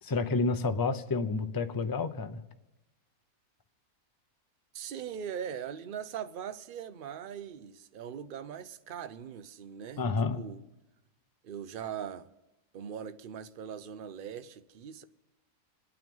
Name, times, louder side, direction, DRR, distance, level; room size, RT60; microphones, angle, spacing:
voice 1, 0.0-2.4 10.0-10.4, left 3 dB, 35° left, 0.3 m, -29 dB
voice 2, 4.7-10.0 10.3-10.6 11.4-12.3 12.7-15.0, right 8 dB, 60° right, 0.5 m, -40 dB
28.0 x 9.3 x 5.3 m
omnidirectional pair, 1.7 m